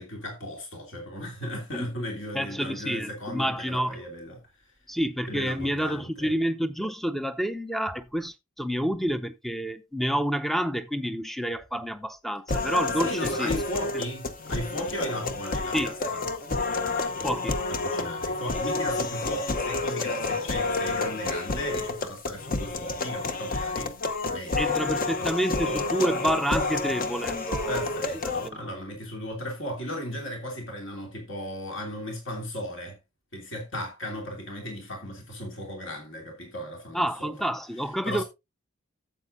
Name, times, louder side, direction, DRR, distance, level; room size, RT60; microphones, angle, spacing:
voice 1, 0.0-4.4 5.3-6.3 13.0-16.2 16.5-17.3 17.7-23.9 24.2-24.7 25.0-25.3 27.7-33.0 33.3-37.3 38.0-38.2, equal, 60° left, 2.8 m, -36 dB
voice 2, 2.3-4.0 4.9-13.5 13.9-14.0 15.7-15.9 17.2-17.6 24.6-27.8 28.4-28.6 36.9-38.2, equal, ahead, 0.6 m, -29 dB
sound 1, 12.5-28.5, left 3 dB, 40° left, 0.8 m, -29 dB
12.5 x 8.1 x 2.6 m
head